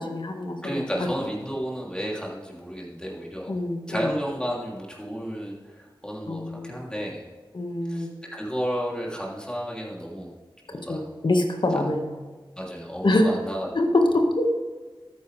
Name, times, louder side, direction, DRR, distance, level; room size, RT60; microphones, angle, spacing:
voice 1, 0.0-1.1 3.5-4.1 6.3-6.7 7.5-8.1 10.9-12.2 13.0-13.3 13.7-14.5, left 1 dB, 60° left, 3 dB, 1.7 m, -25 dB
voice 2, 0.6-3.5 3.9-7.2 7.8-10.3 10.7-11.0 12.6-13.7, equal, 10° left, -3 dB, 3.1 m, -32 dB
13.0 x 9.5 x 3.4 m, 1.3 s
wide cardioid pair, 65°, 9 cm